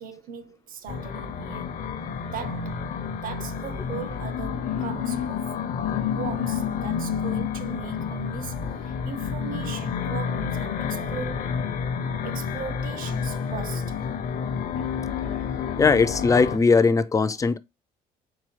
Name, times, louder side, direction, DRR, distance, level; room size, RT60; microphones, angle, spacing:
voice 1, 0.0-1.8 2.2-2.9 3.1-5.6 6.2-11.5 12.2-14.0, right 6 dB, 55° right, 0.7 m, -38 dB
sound 1, 0.9-16.6, left 7 dB, 50° left, 0.7 m, -29 dB
voice 2, 15.8-17.6, left 4 dB, 20° left, 0.4 m, -19 dB
4.7 x 2.7 x 3.1 m
cardioid pair, 110°, 17 cm